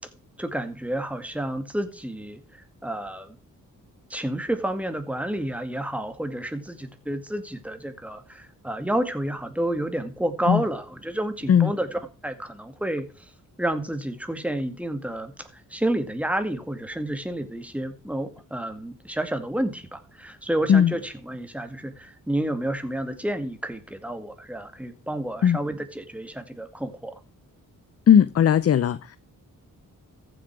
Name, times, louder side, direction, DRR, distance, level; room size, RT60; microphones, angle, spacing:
voice 1, 0.4-3.4 4.1-13.0 13.6-27.1, right 1 dB, 5° right, 2.1 m, -30 dB
voice 2, 28.1-29.2, left 8 dB, 45° left, 0.6 m, -18 dB
14.5 x 7.7 x 4.8 m
cardioid pair, 90°, 34 cm